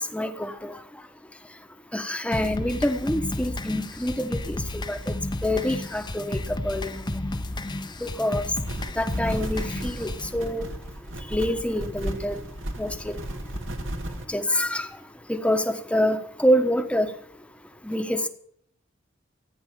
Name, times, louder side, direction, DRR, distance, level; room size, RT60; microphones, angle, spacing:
voice 1, 0.1-0.7 1.9-5.1 5.4-7.2 8.0-8.4 9.0-10.6 11.3-12.4 12.8-13.1 14.3-14.9 15.3-17.1 17.8-18.2, equal, 5° left, 7 dB, 1.2 m, -26 dB
sound 1, 2.3-10.3, left 1 dB, 25° left, 0.9 m, -32 dB
sound 2, 8.7-14.3, right 1 dB, 80° right, 2.1 m, -34 dB
14.5 x 9.7 x 6.8 m, 0.68 s
head